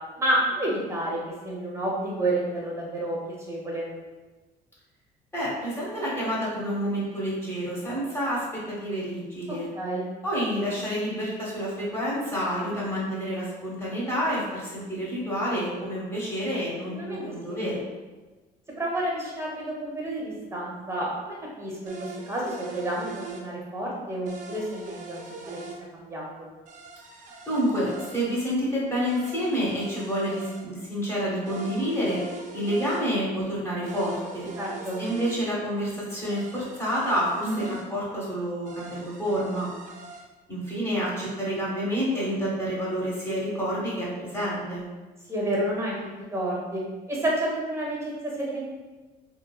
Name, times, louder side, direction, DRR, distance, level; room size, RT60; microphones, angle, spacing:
voice 1, 0.2-3.2 3.5-3.9 9.7-10.1 16.9-17.2 17.5-17.6 18.8-23.1 23.4-25.6 25.9-26.5 34.6-35.0 37.4-37.6 45.3-46.0 46.3-46.8 47.1-48.7, right 1 dB, 15° right, -3 dB, 0.8 m, -30 dB
voice 2, 5.3-9.7 10.2-17.9 27.5-32.2 32.5-34.5 35.0-39.7 40.5-44.9, equal, 15° left, -7 dB, 1.1 m, -28 dB
sound 1, 21.9-23.5 24.3-25.8 26.7-28.3 29.1-30.6 31.5-33.0 33.9-35.4 36.3-37.9 38.7-40.2, right 3 dB, 50° right, 0.4 m, -42 dB
2.8 x 2.2 x 2.3 m, 1.2 s
cardioid pair, 110°, 17 cm